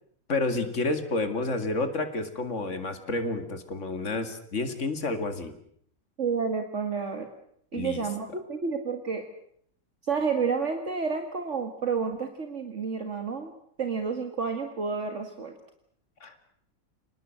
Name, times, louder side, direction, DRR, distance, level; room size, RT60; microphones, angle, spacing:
voice 1, 0.3-5.5 7.7-8.0 16.2-16.4, left 2 dB, 60° left, 8 dB, 2.7 m, -30 dB
voice 2, 6.2-7.3 7.7-9.3 10.1-13.5 13.8-15.6, right 5 dB, 55° right, 6 dB, 2.3 m, -30 dB
28.5 x 19.5 x 7.8 m, 0.65 s
omnidirectional pair, 1.5 m